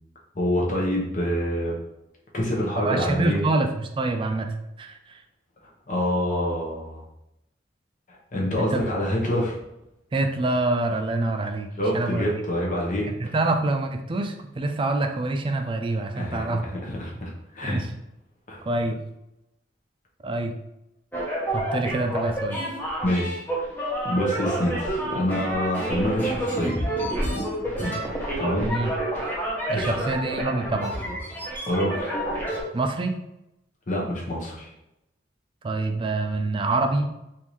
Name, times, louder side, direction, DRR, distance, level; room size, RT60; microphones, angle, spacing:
voice 1, 0.3-1.7 2.3-3.4 5.9-7.0 8.3-9.6 11.8-13.1 16.2-17.8 18.5-18.6 23.0-23.4 24.0-26.8 28.4-28.7 29.2-29.5 29.7-30.1 31.7-32.1 33.9-34.7, left 1 dB, 45° left, -2 dB, 0.9 m, -26 dB
voice 2, 2.8-5.2 8.7-8.8 10.1-11.7 11.9-12.3 13.1-16.6 17.6-17.9 18.6-19.0 20.2-20.5 21.5-22.6 28.6-28.9 29.7-31.0 32.7-33.2 35.6-37.1, right 2 dB, 30° right, 6 dB, 0.3 m, -26 dB
sound 1, 21.1-32.6, right 1 dB, 10° left, 0.7 m, -29 dB
3.6 x 2.6 x 3.0 m, 0.87 s
head